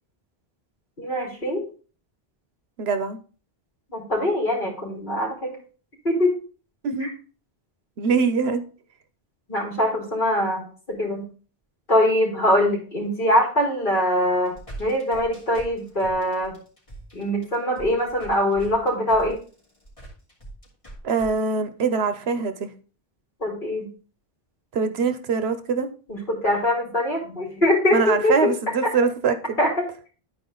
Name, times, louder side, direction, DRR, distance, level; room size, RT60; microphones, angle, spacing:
voice 1, 1.0-1.6 3.9-5.6 6.0-6.4 7.0-7.1 9.5-11.2 11.9-14.5 14.8-16.5 17.1-19.4 23.4-23.9 26.1-28.3 28.8-28.9 29.6-30.1, left 1 dB, 55° left, 3.1 m, -23 dB
voice 2, 2.8-3.2 6.8-7.1 8.0-8.6 21.0-22.7 24.7-25.9 27.9-29.6, right 5 dB, 80° right, 1.1 m, -23 dB
sound 1, 14.3-21.3, right 1 dB, 35° left, 2.5 m, -42 dB
11.0 x 4.6 x 3.9 m
omnidirectional pair, 1.0 m